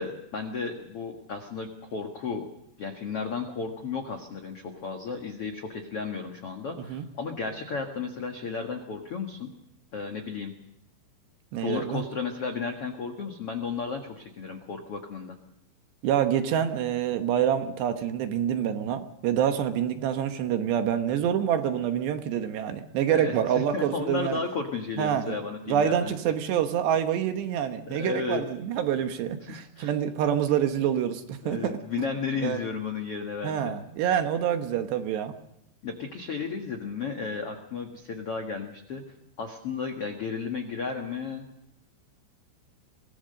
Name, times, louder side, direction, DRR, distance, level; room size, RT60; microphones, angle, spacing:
voice 1, 0.0-2.5 2.8-9.5 9.9-10.5 11.6-15.3 23.1-26.3 27.9-28.4 29.5-29.9 31.4-33.8 35.8-39.0 39.4-41.4, left 5 dB, 75° left, 4 dB, 1.3 m, -33 dB
voice 2, 11.5-12.0 16.0-24.4 25.0-25.4 25.7-32.1 32.4-32.6 33.4-35.3, right 9 dB, 70° right, 7 dB, 3.1 m, -27 dB
24.0 x 18.5 x 6.6 m, 0.78 s
omnidirectional pair, 5.5 m